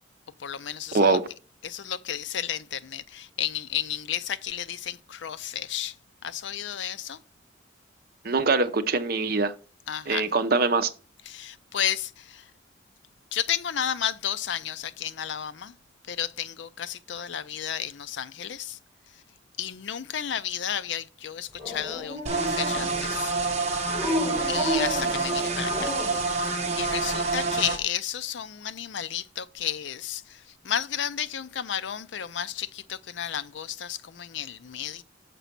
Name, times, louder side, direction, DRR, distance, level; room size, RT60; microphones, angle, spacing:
voice 1, 0.4-1.2 1.6-5.9 6.2-7.2 9.9-10.3 11.3-12.5 13.3-15.7 16.1-18.8 19.6-23.3 24.5-25.9 26.8-35.0, left 9 dB, 70° left, 0.4 m, -32 dB
voice 2, 0.9-1.2 8.2-9.5 10.1-10.9, right 3 dB, 50° right, 0.7 m, -23 dB
Dog, 21.6-23.1 23.9-26.3, equal, 15° right, 3.2 m, -32 dB
sound 1, 22.3-27.8, right 3 dB, 35° right, 1.2 m, -27 dB
6.8 x 5.0 x 5.8 m
head